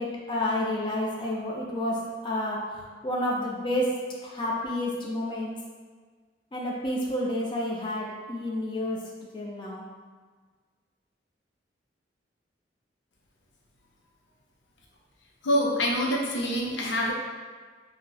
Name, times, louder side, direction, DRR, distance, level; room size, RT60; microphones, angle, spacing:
voice 1, 0.0-3.9 4.2-5.5 6.5-9.0 9.3-9.8, left 1 dB, 25° left, -3 dB, 0.3 m, -30 dB
voice 2, 15.4-17.1, equal, 90° left, -1 dB, 0.5 m, -25 dB
3.9 x 2.0 x 2.2 m, 1.5 s
head